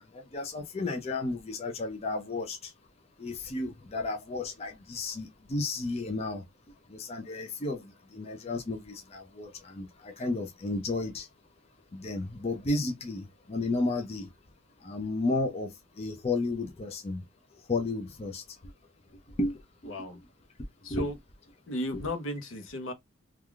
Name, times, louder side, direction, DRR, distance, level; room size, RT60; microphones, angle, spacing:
voice 1, 0.1-2.7 3.2-6.4 6.9-11.3 11.9-14.3 14.8-15.7 16.0-17.2 17.7-18.4 19.4-19.6 19.8-19.9 20.9-21.1 21.9-22.1, left 2 dB, 30° left, 0.4 m, -33 dB
voice 2, 19.9-20.2 20.8-21.1 21.7-22.9, equal, 70° left, 0.7 m, -34 dB
3.3 x 2.3 x 2.3 m
head